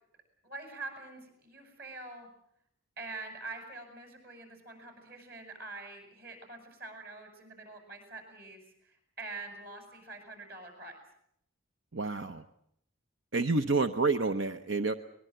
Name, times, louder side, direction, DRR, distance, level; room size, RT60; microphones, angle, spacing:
voice 1, 0.4-2.3 3.0-11.0, right 3 dB, 50° right, 5 dB, 7.7 m, -45 dB
voice 2, 11.9-12.4 13.3-14.9, right 3 dB, 65° right, 9 dB, 0.9 m, -29 dB
23.0 x 22.0 x 7.9 m, 0.73 s
head